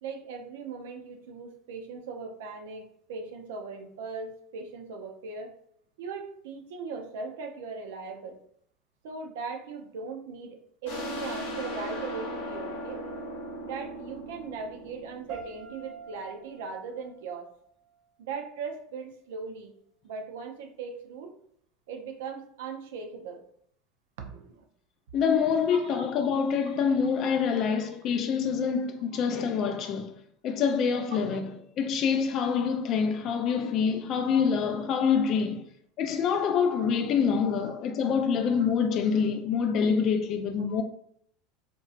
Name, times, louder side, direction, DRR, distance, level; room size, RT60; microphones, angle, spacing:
voice 1, 0.0-5.5 6.0-8.4 9.0-13.1 13.6-17.5 18.2-19.7 20.0-21.3 21.9-23.4 24.2-24.6 25.7-26.1 26.8-26.9 27.5-27.6 31.3-31.4 37.7-37.8, right 5 dB, 75° right, 0.5 m, -39 dB
sound 1, 10.8-16.2, equal, 75° left, 1.0 m, -38 dB
sound 2, 15.3-18.3, right 6 dB, 35° right, 0.8 m, -47 dB
voice 2, 25.1-30.1 30.4-35.7 36.0-40.8, left 6 dB, 50° left, 0.3 m, -26 dB
2.8 x 2.2 x 2.4 m
hypercardioid pair, 80°, 0 cm